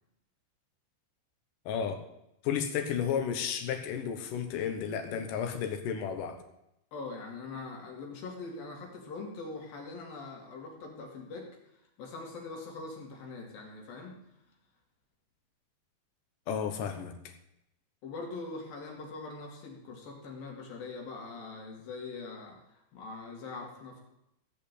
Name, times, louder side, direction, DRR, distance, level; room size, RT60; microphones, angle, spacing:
voice 1, 1.7-2.0 2.4-6.4 16.5-17.1, left 7 dB, 75° left, 5 dB, 2.0 m, -32 dB
voice 2, 6.9-14.2 18.0-24.0, left 3 dB, 55° left, 0 dB, 3.8 m, -42 dB
16.5 x 5.7 x 8.5 m, 0.84 s
omnidirectional pair, 5.4 m